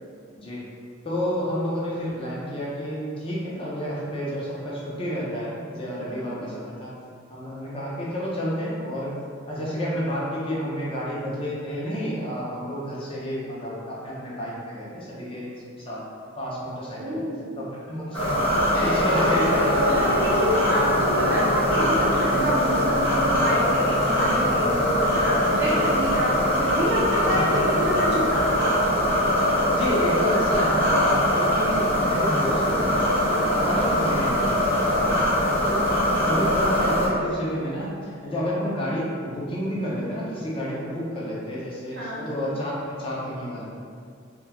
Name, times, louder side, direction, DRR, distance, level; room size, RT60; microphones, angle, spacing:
voice 1, 1.0-6.9 7.3-9.1 9.5-15.5 15.9-16.0 16.3-17.2 17.6-20.2 24.3-24.5 25.7-25.8 27.2-27.8 29.7-33.0 33.5-35.9 36.2-43.6, equal, 25° left, -6 dB, 0.4 m, -30 dB
voice 2, 5.9-6.5 17.0-17.5 19.1-19.2 19.7-28.5 33.2-33.6 41.9-42.3, equal, 55° right, -6 dB, 0.6 m, -28 dB
sound 1, 18.1-37.1, equal, 10° left, 1.0 m, -22 dB
sound 2, 18.7-27.7, left 1 dB, 75° left, 0.7 m, -33 dB
2.9 x 2.1 x 2.2 m, 2.2 s
head